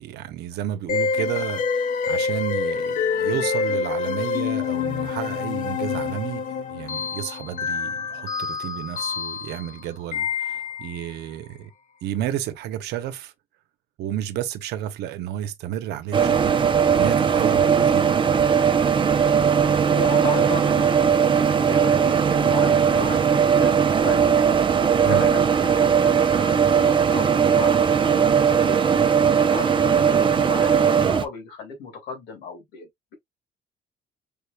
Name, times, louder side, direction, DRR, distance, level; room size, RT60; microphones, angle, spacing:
voice 1, 0.0-6.4 6.7-11.7 12.0-13.3 14.0-16.7 16.9-18.2 25.0-25.2, right 11 dB, 80° right, 0.9 m, -31 dB
sound 1, 0.9-11.0, left 5 dB, 50° left, 0.8 m, -27 dB
sound 2, 16.1-31.3, right 7 dB, 30° right, 0.6 m, -19 dB
voice 2, 19.9-24.4 25.1-28.8 29.5-33.1, left 5 dB, 80° left, 2.5 m, -35 dB
5.1 x 3.4 x 2.3 m
cardioid pair, 110°, 17 cm